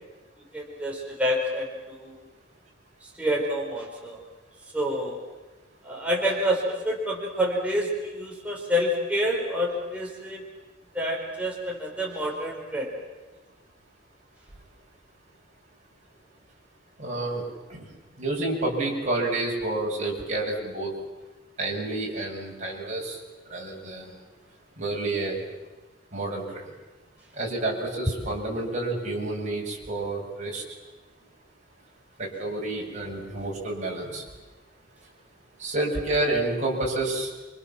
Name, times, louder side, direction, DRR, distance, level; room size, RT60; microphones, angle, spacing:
voice 1, 0.5-2.2 3.0-4.2 4.7-5.2 5.8-10.5 10.9-12.9, equal, 5° right, -3 dB, 4.7 m, -28 dB
voice 2, 17.0-17.4 17.7-17.8 18.2-20.9 21.6-23.2 23.5-24.2 24.8-25.4 26.1-26.6 27.4-30.6 32.2-34.2 35.6-37.3, right 2 dB, 40° right, -2 dB, 7.9 m, -29 dB
28.5 x 25.5 x 7.5 m, 1.1 s
head